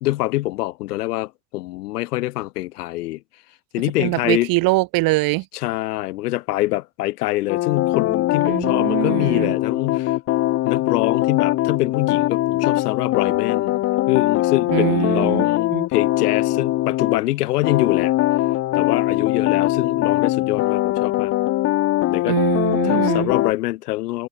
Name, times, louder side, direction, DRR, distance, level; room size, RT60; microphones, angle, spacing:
voice 1, 0.0-3.2 3.7-4.5 5.5-10.2 10.6-13.8 14.1-18.1 18.7-21.3 22.1-22.4 22.8-24.3, left 17 dB, 90° left, 1.1 m, -25 dB
voice 2, 4.0-5.5 8.4-9.5 14.7-15.4 15.7-15.9 22.3-23.3, right 23 dB, 50° right, 2.3 m, -22 dB
sound 1, 7.5-17.2 17.6-23.5, left 16 dB, 30° left, 0.7 m, -21 dB
supercardioid pair, 135°, 45 cm